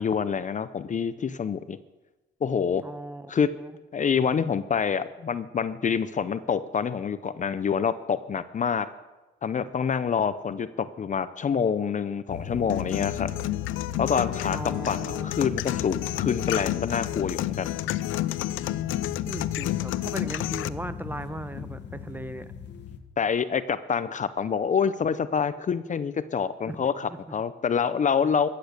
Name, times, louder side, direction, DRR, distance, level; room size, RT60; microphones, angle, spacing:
voice 1, 0.0-1.8 2.4-2.9 3.3-3.5 3.9-8.9 9.4-13.3 14.0-17.7 23.2-28.5, left 6 dB, 40° left, 14 dB, 0.6 m, -27 dB
voice 2, 2.8-3.3 3.6-3.7 14.5-15.3 19.3-22.5 26.7-26.8 27.1-27.2, right 1 dB, 10° right, 12 dB, 0.8 m, -37 dB
sound 1, 12.3-23.0, left 8 dB, 60° left, 1.3 m, -38 dB
sound 2, 12.7-20.7, left 15 dB, 85° left, 0.5 m, -30 dB
14.0 x 8.6 x 6.7 m, 1.1 s
cardioid pair, 90°, 20 cm